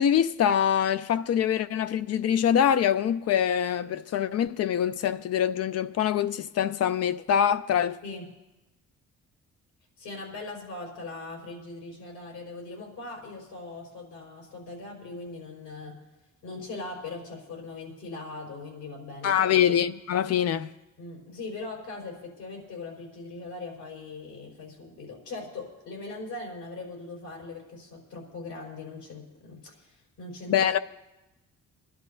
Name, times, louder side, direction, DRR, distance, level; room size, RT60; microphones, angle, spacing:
voice 1, 0.0-8.0 19.2-20.7 30.5-30.8, left 9 dB, 55° left, 0.5 m, -24 dB
voice 2, 10.0-16.0 16.4-19.6 21.0-30.7, left 3 dB, 85° left, 4.7 m, -40 dB
25.5 x 11.0 x 2.7 m
cardioid pair, 90°, 30 cm